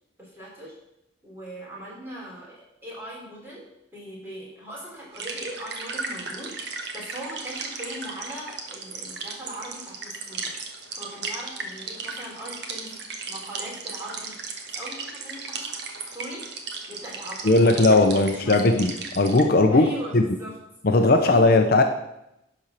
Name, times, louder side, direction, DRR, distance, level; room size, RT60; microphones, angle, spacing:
voice 1, 0.2-0.7 1.2-3.7 3.9-10.5 11.0-12.9 13.3-14.4 14.7-15.7 16.0-16.4 16.9-18.8 19.7-20.6 21.2-21.5, right 1 dB, 10° right, -6 dB, 3.8 m, -40 dB
sound 1, 5.1-19.4, right 4 dB, 55° right, 1.3 m, -36 dB
voice 2, 17.4-19.9 20.1-20.2 20.8-21.8, left 2 dB, 50° left, 6 dB, 0.7 m, -18 dB
10.5 x 4.3 x 6.7 m, 0.84 s
head